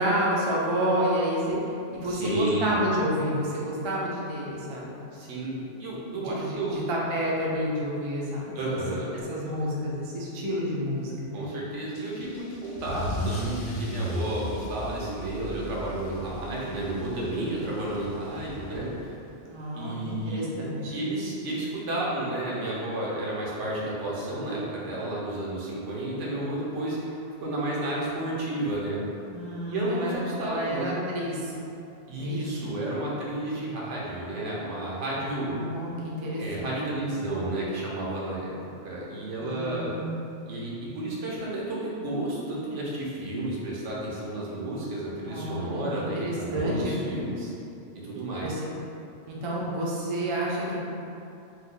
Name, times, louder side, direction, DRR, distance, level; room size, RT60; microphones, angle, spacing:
voice 1, 0.0-1.6 1.9-4.9 5.6-5.7 6.1-11.5 19.4-20.9 29.3-30.1 30.4-31.5 32.1-32.6 35.5-37.1 39.4-40.0 45.3-47.0 48.4-48.5 49.3-50.8, equal, 50° right, -4 dB, 0.3 m, -30 dB
voice 2, 2.0-2.8 5.1-5.5 5.8-6.8 8.5-9.1 11.3-19.1 19.7-20.4 20.9-29.0 29.7-30.9 32.1-35.5 36.4-38.5 38.8-39.9 40.5-47.5 47.9-48.6, right 1 dB, 80° right, -5 dB, 1.0 m, -32 dB
Car / Engine starting / Accelerating revving vroom, 11.9-19.1, equal, 80° left, 0.9 m, -35 dB
3.1 x 2.1 x 3.7 m, 2.7 s
omnidirectional pair, 1.2 m